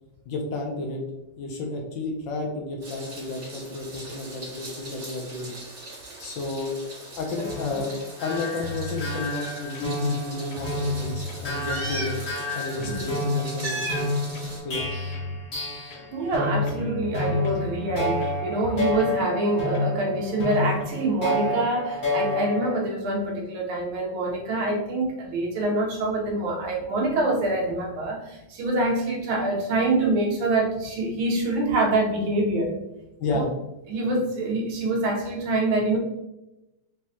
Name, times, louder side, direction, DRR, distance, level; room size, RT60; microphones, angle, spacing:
voice 1, 0.3-1.0 1.4-5.5 6.2-6.8 7.2-12.2 12.5-14.1 14.6-14.8 33.2-33.5, left 2 dB, 70° left, 1 dB, 1.3 m, -31 dB
Meow, 2.8-14.6, right 2 dB, 45° right, 1.8 m, -38 dB
sound 1, 7.4-16.1 16.3-22.8, left 1 dB, 45° left, 1.6 m, -30 dB
sound 2, 8.6-9.2 9.7-10.2 10.5-12.3 12.8-13.1 13.6-13.9 14.3-15.4 15.9-16.4 16.7-18.5 19.0-19.2 19.7-20.0 20.5-20.7, left 2 dB, 85° left, 0.8 m, -36 dB
voice 2, 16.1-32.8 33.3-33.4 33.9-36.0, right 2 dB, 75° right, 0 dB, 1.6 m, -25 dB
5.3 x 3.1 x 2.8 m, 0.94 s
omnidirectional pair, 2.3 m